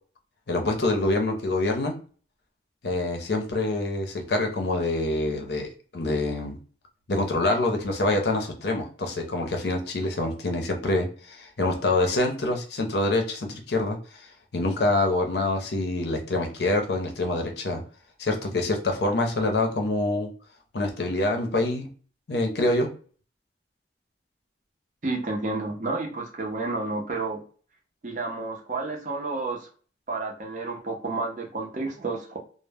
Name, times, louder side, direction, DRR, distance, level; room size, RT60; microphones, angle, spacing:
voice 1, 0.5-1.9 2.8-6.6 7.1-14.3 14.5-17.8 18.2-20.3 20.7-21.9 22.3-22.9, left 2 dB, 65° left, 3 dB, 0.6 m, -26 dB
voice 2, 25.0-27.4 28.0-29.7 30.1-32.4, right 3 dB, 40° right, 1 dB, 0.5 m, -30 dB
2.0 x 2.0 x 3.3 m, 0.41 s
head